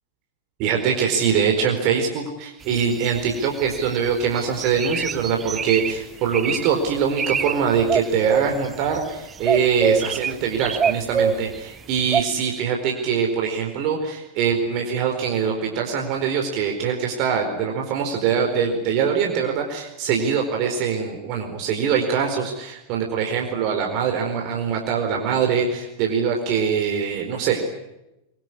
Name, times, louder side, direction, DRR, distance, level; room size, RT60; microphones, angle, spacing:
voice 1, 0.6-27.6, right 6 dB, 45° right, 2 dB, 4.5 m, -23 dB
sound 1, 2.7-3.9 4.3-5.9 6.3-6.7 7.0-7.5 7.8-9.1 9.4-11.5 12.1-12.2, right 6 dB, 20° right, 1.2 m, -24 dB
25.5 x 23.5 x 9.9 m, 0.94 s
figure-of-eight pair, 90°, 0 cm